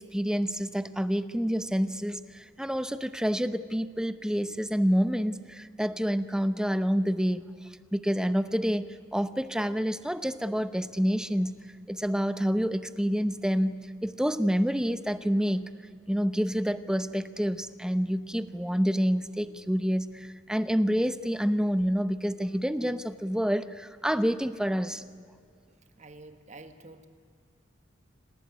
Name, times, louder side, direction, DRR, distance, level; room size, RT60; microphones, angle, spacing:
voice 1, 0.0-7.5 7.9-15.7 16.1-25.0, equal, 5° right, 12 dB, 0.8 m, -28 dB
voice 2, 25.7-27.1, right 2 dB, 35° right, 8 dB, 1.7 m, -49 dB
27.0 x 18.0 x 9.6 m, 2.1 s
head